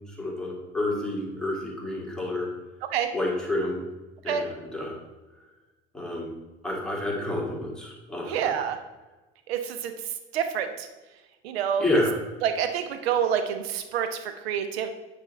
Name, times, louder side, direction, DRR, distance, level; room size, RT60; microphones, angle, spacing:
voice 1, 0.1-2.5 3.1-3.8 4.2-5.0 5.9-6.3 6.6-8.6 11.8-12.2, left 1 dB, ahead, -4 dB, 2.1 m, -29 dB
voice 2, 8.2-8.8 9.5-9.9 10.3-10.9 11.4-12.0 12.4-14.9, right 8 dB, 65° right, 8 dB, 0.8 m, -27 dB
8.9 x 3.2 x 4.1 m, 1.2 s
figure-of-eight pair, 65°, 33 cm